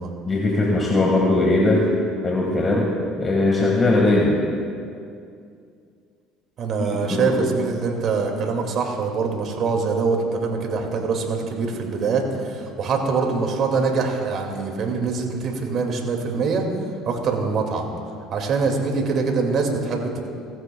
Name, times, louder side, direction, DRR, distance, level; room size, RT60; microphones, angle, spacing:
voice 1, 0.2-1.9 2.2-2.9 3.2-4.4 6.8-7.4, left 2 dB, 25° left, -2 dB, 1.6 m, -20 dB
voice 2, 6.6-16.7 17.1-17.9 18.3-20.2, right 4 dB, 50° right, 2 dB, 2.1 m, -24 dB
17.0 x 15.0 x 2.3 m, 2.4 s
supercardioid pair, 95°, 0 cm